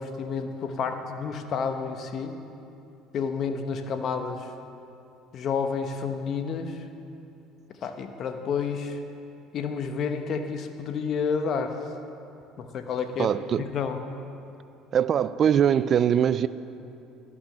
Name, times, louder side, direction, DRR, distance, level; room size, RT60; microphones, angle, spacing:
voice 1, 0.0-2.4 3.1-4.5 5.3-6.8 7.8-9.0 9.5-11.8 12.6-13.3 13.7-14.0, left 6 dB, 50° left, 7 dB, 1.0 m, -30 dB
voice 2, 13.2-13.7 14.9-16.5, right 9 dB, 45° right, 16 dB, 0.3 m, -22 dB
13.0 x 6.1 x 6.6 m, 2.7 s
supercardioid pair, 85°, 0 cm